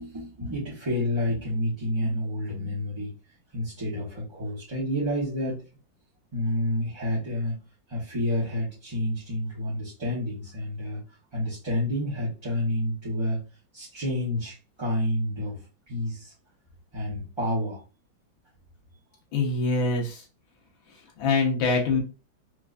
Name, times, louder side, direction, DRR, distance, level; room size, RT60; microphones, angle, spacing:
voice 1, 0.0-3.1 3.5-5.6 6.3-7.5 7.9-11.0 11.3-13.4 13.7-15.6 15.9-16.3 16.9-17.8, left 1 dB, 20° right, -9 dB, 0.7 m, -29 dB
voice 2, 19.3-20.2 21.2-22.0, left 3 dB, 90° left, 0 dB, 1.8 m, -24 dB
4.5 x 2.4 x 2.4 m, 0.32 s
omnidirectional pair, 2.1 m